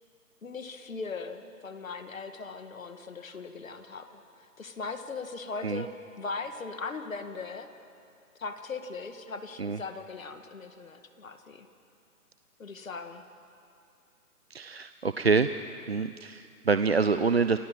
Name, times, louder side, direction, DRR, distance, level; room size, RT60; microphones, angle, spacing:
voice 1, 0.4-7.7 8.4-11.7 12.6-13.2, left 4 dB, 60° left, 7 dB, 2.1 m, -39 dB
voice 2, 14.5-15.5 15.9-17.6, right 4 dB, 45° right, 11 dB, 0.6 m, -26 dB
28.5 x 22.5 x 7.5 m, 2.5 s
hypercardioid pair, 170°, 46 cm